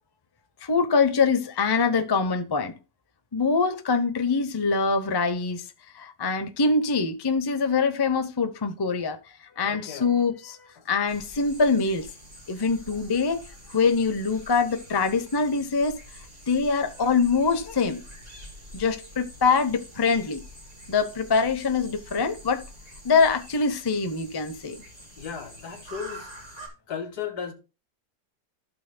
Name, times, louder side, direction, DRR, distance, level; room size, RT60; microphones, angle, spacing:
voice 1, 0.6-2.8 3.3-5.6 5.9-9.2 9.6-10.6 10.9-12.1 12.5-13.4 13.7-16.0 16.5-18.0 18.7-20.4 20.9-22.6 23.0-24.8, left 4 dB, 30° left, 0.4 m, -24 dB
voice 2, 9.6-10.2 10.8-10.9 25.2-26.3 26.9-27.5, left 7 dB, 70° left, 2.1 m, -35 dB
sound 1, 11.1-26.7, equal, 25° right, 3.1 m, -46 dB
15.5 x 6.1 x 2.2 m
omnidirectional pair, 1.7 m